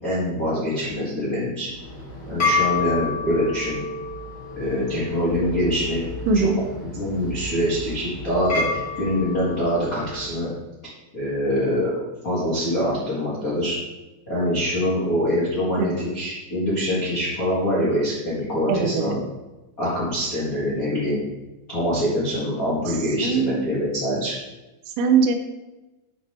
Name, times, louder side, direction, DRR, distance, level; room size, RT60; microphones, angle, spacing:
voice 1, 0.0-1.7 2.3-3.8 4.5-6.1 6.9-10.5 11.1-11.9 12.2-13.7 14.2-19.2 19.8-21.2 21.7-24.3, equal, 80° left, -9 dB, 0.7 m, -24 dB
sound 1, 1.8-10.3, left 3 dB, 60° left, 1.0 m, -29 dB
voice 2, 6.3-6.6 15.8-16.0 18.7-19.0 23.2-23.7 25.0-25.4, right 5 dB, 90° right, 5 dB, 3.4 m, -20 dB
8.1 x 6.5 x 3.4 m, 1.1 s
omnidirectional pair, 5.8 m